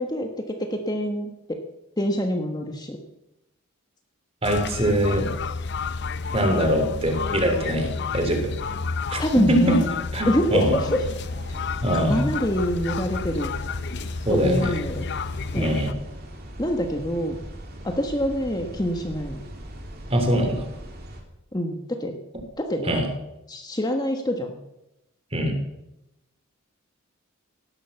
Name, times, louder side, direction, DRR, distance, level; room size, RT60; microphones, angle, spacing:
voice 1, 0.0-1.6 2.0-3.0 9.2-9.9 10.3-11.0 11.9-13.5 14.3-15.1 15.5-15.8 16.6-17.4 17.8-19.4 21.5-22.2 22.6-23.0 23.5-24.5, equal, 20° left, 4 dB, 1.3 m, -26 dB
sound 1, 4.4-15.9, left 4 dB, 55° left, 0.6 m, -30 dB
voice 2, 4.4-5.2 6.3-7.9 8.1-8.5 9.1-9.2 9.5-9.8 10.1-10.7 11.8-12.2 14.2-14.7 15.5-15.9 20.1-20.5 22.8-23.1 25.3-25.6, right 1 dB, 25° right, 4 dB, 3.3 m, -22 dB
sound 2, 10.9-21.2, equal, 45° right, 3.1 m, -40 dB
17.0 x 11.5 x 7.1 m, 0.89 s
head